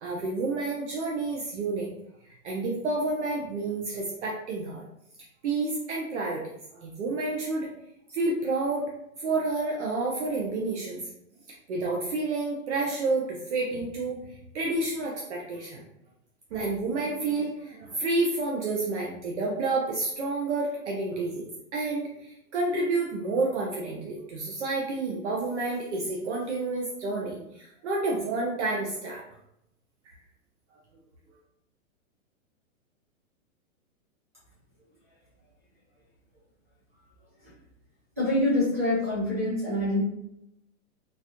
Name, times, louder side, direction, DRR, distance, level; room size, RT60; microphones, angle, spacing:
voice 1, 0.0-1.9 2.3-4.8 5.4-6.4 6.7-7.7 8.1-8.9 9.2-11.0 11.7-14.2 14.5-15.8 16.5-21.5 21.7-29.2, right 3 dB, 55° right, -2 dB, 0.7 m, -29 dB
voice 2, 38.2-40.0, left 1 dB, 10° right, -11 dB, 0.4 m, -25 dB
3.9 x 2.5 x 2.8 m, 0.81 s
hypercardioid pair, 170°, 42 cm